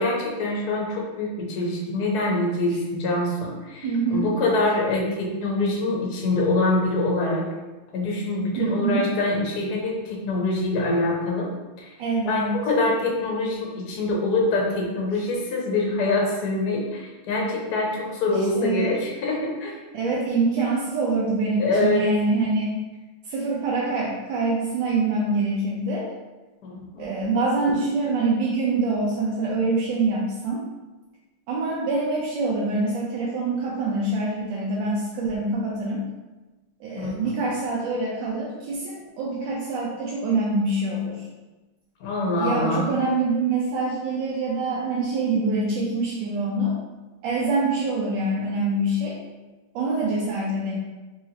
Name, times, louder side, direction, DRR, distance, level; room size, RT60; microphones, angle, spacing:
voice 1, 0.0-7.4 7.9-11.5 11.8-11.9 12.2-19.8 21.6-22.0 26.6-27.2 37.0-37.3 42.0-42.9, left 2 dB, 65° left, -2 dB, 1.0 m, -25 dB
voice 2, 3.8-4.3 8.6-9.1 12.0-12.6 18.5-19.0 19.9-22.7 23.2-26.1 27.0-30.6 31.5-36.1 36.8-41.3 42.4-46.8 47.2-49.2 49.7-50.8, right 3 dB, 75° right, -5 dB, 1.2 m, -25 dB
4.1 x 2.8 x 2.8 m, 1.2 s
omnidirectional pair, 2.3 m